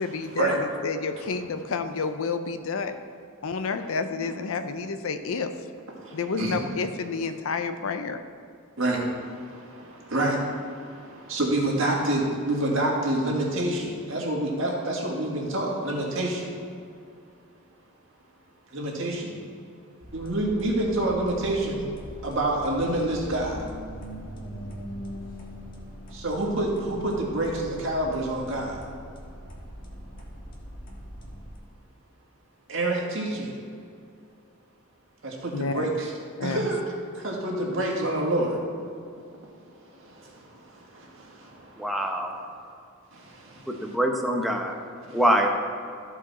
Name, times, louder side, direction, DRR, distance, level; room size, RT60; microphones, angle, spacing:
voice 1, 0.0-3.0 3.4-5.5 6.1-8.2 35.5-35.9 36.4-36.6, left 4 dB, 70° left, 9 dB, 0.5 m, -29 dB
voice 2, 6.0-6.7 8.8-16.5 18.7-19.3 20.1-21.8 22.2-23.6 26.1-28.8 32.7-33.6 35.2-36.1 36.4-36.8 37.2-38.6 39.9-42.0 42.2-42.5 43.1-44.0 45.1-45.2, right 1 dB, 65° right, -2 dB, 1.8 m, -28 dB
sound 1, 20.0-31.6, equal, 45° left, 1.4 m, -41 dB
voice 3, 41.8-42.3 43.7-44.7 45.1-45.5, right 1 dB, ahead, 1 dB, 0.7 m, -24 dB
14.0 x 4.8 x 4.2 m, 2.4 s
head